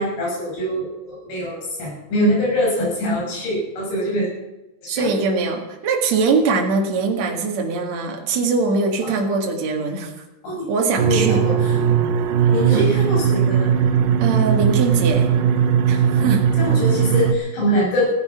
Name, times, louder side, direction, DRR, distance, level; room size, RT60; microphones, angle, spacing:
voice 1, 0.0-4.3 4.8-5.1 9.0-9.2 10.4-11.8 12.5-13.7 16.2-18.1, equal, 65° left, -3 dB, 8.0 m, -23 dB
voice 2, 4.9-10.1 10.7-11.4 12.7-12.9 14.2-15.3 15.9-16.4, right 4 dB, 50° right, 2 dB, 2.9 m, -22 dB
sound 1, 11.0-17.3, right 8 dB, 65° right, 2.2 m, -18 dB
15.5 x 13.5 x 5.8 m, 0.99 s
omnidirectional pair, 4.7 m